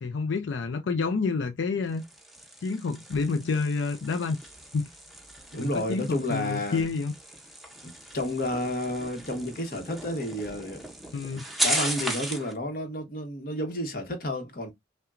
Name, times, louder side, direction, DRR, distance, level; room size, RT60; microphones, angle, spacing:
voice 1, 0.0-2.0 2.6-4.4 4.7-4.9 5.6-7.1 11.1-11.4, left 4 dB, 90° left, 0.5 m, -28 dB
sound 1, 1.8-12.5, right 1 dB, ahead, 0.7 m, -36 dB
voice 2, 5.5-6.9 7.8-10.9 11.6-14.7, left 1 dB, 50° left, 1.1 m, -31 dB
5.7 x 2.2 x 2.4 m
head